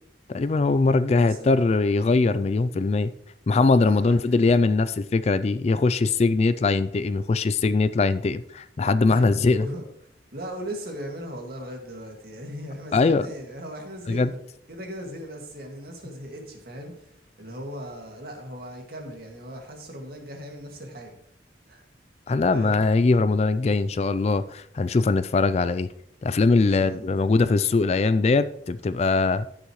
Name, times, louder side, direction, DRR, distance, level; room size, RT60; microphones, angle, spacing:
voice 1, 0.3-3.1 3.5-9.7 12.9-13.3 14.1-14.3 22.3-25.9 26.2-29.5, left 3 dB, 35° left, 0.3 m, -21 dB
voice 2, 1.1-1.5 3.8-4.2 9.1-9.9 10.3-14.4 14.7-21.1 21.7-21.8 22.5-22.8 26.7-27.1, equal, 55° right, 2.1 m, -38 dB
15.0 x 6.6 x 3.1 m
head